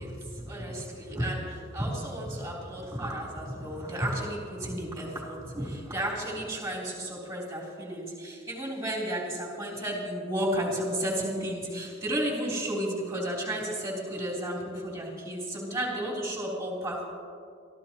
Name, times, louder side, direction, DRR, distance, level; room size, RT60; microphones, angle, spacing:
voice 1, 0.0-17.0, right 1 dB, 15° right, -4 dB, 3.7 m, -33 dB
26.0 x 14.0 x 3.1 m, 2.3 s
head